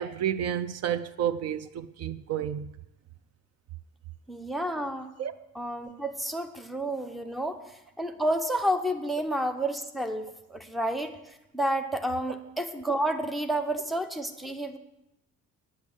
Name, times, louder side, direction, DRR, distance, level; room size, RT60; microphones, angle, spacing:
voice 1, 0.0-2.7 5.2-5.3, right 9 dB, 55° right, 0.6 m, -30 dB
voice 2, 4.3-5.1 5.5-14.8, right 1 dB, ahead, 0.7 m, -30 dB
9.7 x 8.2 x 7.2 m
cardioid pair, 160°, 30 cm